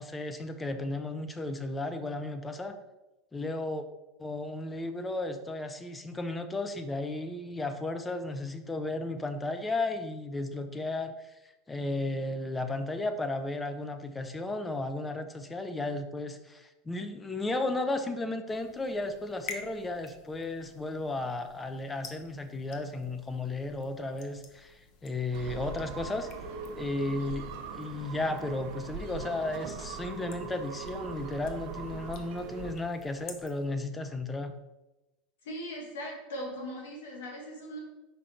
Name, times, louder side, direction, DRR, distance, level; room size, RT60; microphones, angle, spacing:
voice 1, 0.0-2.8 3.3-3.9 4.2-26.3 26.7-34.5, left 2 dB, 15° left, 8 dB, 0.7 m, -34 dB
sound 1, 18.5-33.7, left 5 dB, 55° left, 1.0 m, -51 dB
sound 2, 25.3-32.7, right 4 dB, 60° right, 0.8 m, -41 dB
voice 2, 35.4-37.8, equal, 80° left, -1 dB, 2.0 m, -39 dB
5.2 x 5.0 x 4.4 m, 1.0 s
hypercardioid pair, 95°, 0 cm